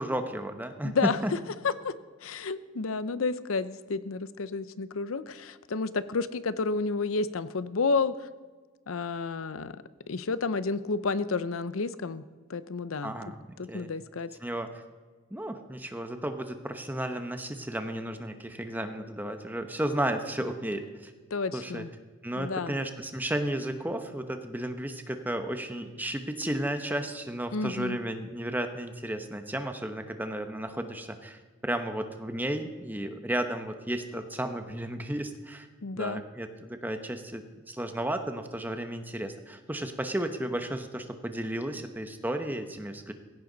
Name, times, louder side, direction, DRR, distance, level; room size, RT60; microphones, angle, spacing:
voice 1, 0.0-1.3 13.0-13.9 14.4-14.7 15.3-21.1 21.5-21.8 22.2-35.7 36.0-43.1, right 1 dB, 10° right, 7 dB, 0.9 m, -33 dB
voice 2, 0.8-1.2 1.6-1.9 2.2-8.1 8.9-9.7 10.1-12.2 12.5-13.1 13.6-14.3 21.3-21.9 22.4-22.8 27.5-28.0 35.8-36.2, left 4 dB, 90° left, 14 dB, 0.7 m, -30 dB
16.5 x 16.0 x 4.0 m, 1.4 s
head